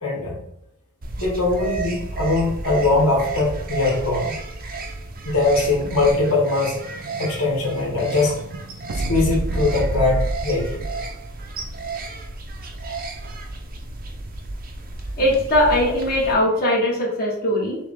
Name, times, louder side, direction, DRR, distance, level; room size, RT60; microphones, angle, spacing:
voice 1, 0.0-0.4 1.2-4.4 5.2-6.8 7.2-8.4 8.9-10.9, left 3 dB, 75° left, -3 dB, 1.4 m, -21 dB
sound 1, 1.0-16.3, right 3 dB, 40° right, 0.6 m, -33 dB
Explosion, 5.2-11.2, right 1 dB, 85° right, 0.6 m, -30 dB
voice 2, 15.2-17.8, left 1 dB, 40° left, -5 dB, 1.6 m, -20 dB
6.0 x 2.4 x 3.7 m, 0.80 s
head